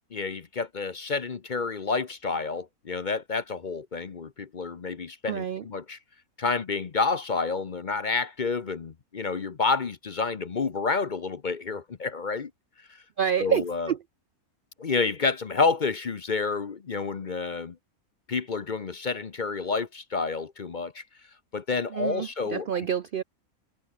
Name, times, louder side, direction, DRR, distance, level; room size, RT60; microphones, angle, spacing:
voice 1, 0.1-6.0 6.4-12.5 12.9-13.0 13.4-13.9 14.8-17.8 18.3-21.0 21.5-22.8, left 4 dB, 40° left, 0.8 m, -29 dB
voice 2, 5.3-5.6 13.2-14.0 21.9-23.2, right 8 dB, 80° right, 0.4 m, -28 dB
omnidirectional pair, 1.6 m